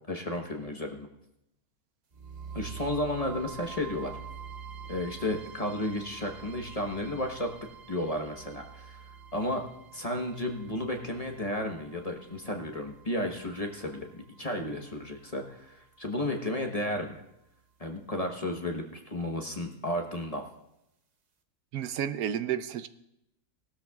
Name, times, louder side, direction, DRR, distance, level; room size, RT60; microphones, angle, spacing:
voice 1, 0.1-1.1 2.5-4.2 4.9-7.5 7.9-9.0 9.3-9.6 9.9-17.2 17.8-20.4, left 1 dB, 30° left, 2 dB, 1.0 m, -33 dB
sound 1, 2.1-16.1, right 6 dB, 35° right, 0.7 m, -47 dB
voice 2, 21.7-22.9, right 9 dB, 75° right, 12 dB, 1.1 m, -31 dB
18.5 x 13.0 x 2.3 m, 0.83 s
omnidirectional pair, 1.6 m